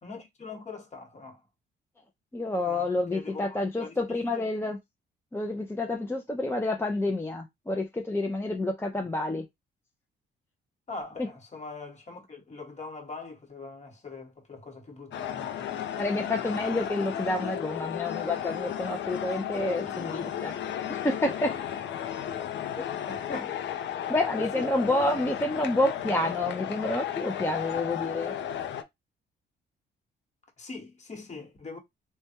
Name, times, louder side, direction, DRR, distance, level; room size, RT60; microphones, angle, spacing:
voice 1, 0.0-1.4 2.6-4.5 10.9-15.7 19.6-20.4 23.1-23.6 24.4-24.7 30.6-31.8, left 3 dB, 35° left, 1.2 m, -42 dB
voice 2, 2.3-4.8 5.3-9.5 16.0-20.6 20.9-21.6 22.8-22.9 24.1-28.3, left 2 dB, 10° left, 0.5 m, -29 dB
sound 1, 15.1-28.8, left 10 dB, 65° left, 0.5 m, -34 dB
3.3 x 2.2 x 2.7 m
cardioid pair, 90°, 20 cm